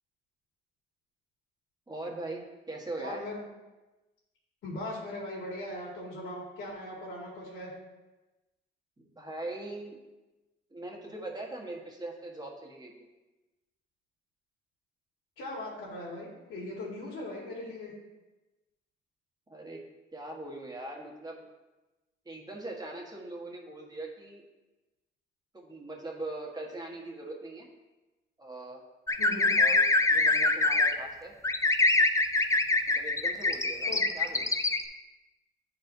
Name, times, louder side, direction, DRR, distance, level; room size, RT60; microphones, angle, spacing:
voice 1, 1.9-3.2 9.0-10.0 10.7-13.1 19.5-19.8 20.1-21.4 22.2-24.4 25.5-27.7 28.4-28.8 29.6-31.3 32.9-34.5, right 2 dB, 20° right, -1 dB, 1.4 m, -41 dB
voice 2, 3.0-3.4 4.6-7.7 15.4-17.9 29.2-29.5 33.9-34.1, left 1 dB, 90° left, -5 dB, 1.9 m, -39 dB
sound 1, 29.1-30.9 31.4-34.8, left 3 dB, 15° left, 0.5 m, -24 dB
9.8 x 4.3 x 2.7 m, 1.1 s
cardioid pair, 90°, 20 cm